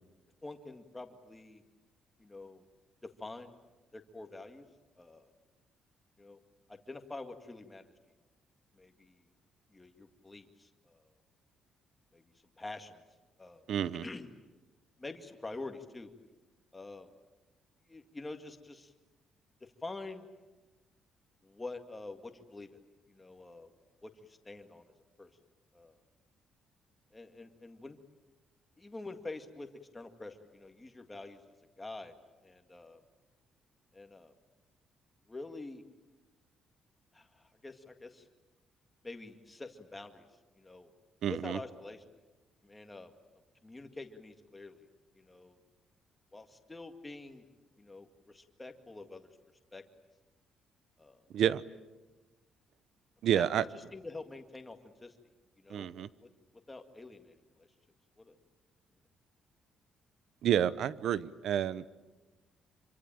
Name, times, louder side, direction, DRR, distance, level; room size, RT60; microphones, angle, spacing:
voice 1, 0.4-1.6 2.2-2.6 3.2-3.5 3.9-4.7 5.0-5.3 6.2-6.4 6.7-7.9 8.7-9.2 9.7-11.1 12.1-12.2 12.6-13.0 13.4-13.6 14.0-14.3 15.0-16.1 16.7-17.1 17.9-18.9 19.8-20.3 21.4-22.8 23.1-23.7 24.0-24.9 25.2-25.3 25.7-26.0 27.1-28.0 28.8-29.7 29.9-32.1 32.4-33.0 33.9-34.3 35.3-35.8 37.1-38.3 39.0-40.3 40.6-40.9 41.3-42.0 42.6-43.1 43.6-44.9 45.2-45.6 46.3-47.4 47.8-49.3 49.7-49.8 51.0-51.2 53.3-55.2 55.6-56.3 56.7-57.7 58.2-58.3, left 2 dB, 10° left, 6 dB, 2.0 m, -46 dB
voice 2, 13.7-14.0 41.2-41.6 51.3-51.6 53.2-53.6 55.7-56.1 60.4-61.9, right 10 dB, 60° right, 17 dB, 0.9 m, -29 dB
26.5 x 25.0 x 9.0 m, 1.2 s
cardioid pair, 170°, 0 cm